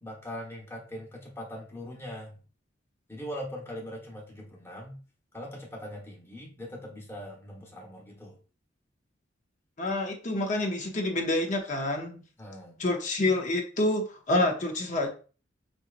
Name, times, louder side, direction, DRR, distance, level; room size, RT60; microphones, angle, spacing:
voice 1, 0.0-2.4 3.1-5.0 5.3-8.4 12.4-12.8, equal, 15° left, -2 dB, 1.2 m, -41 dB
voice 2, 9.8-12.2 12.8-15.1, left 2 dB, 40° left, 2 dB, 0.7 m, -27 dB
5.3 x 2.9 x 2.5 m, 0.37 s
head